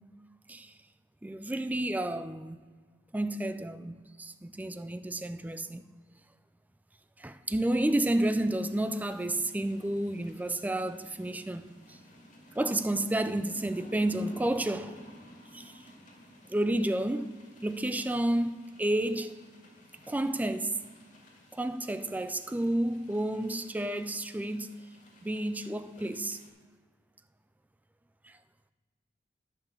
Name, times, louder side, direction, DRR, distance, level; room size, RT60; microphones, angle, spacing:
voice 1, 1.2-2.6 3.1-5.8 7.2-12.0 12.6-15.0 15.5-15.7 16.5-19.4 20.1-20.8 21.5-24.7 25.2-26.4, right 1 dB, 10° right, 0.3 m, -31 dB
sound 1, 7.5-26.5, equal, 45° left, 2.2 m, -55 dB
10.0 x 5.6 x 6.8 m
head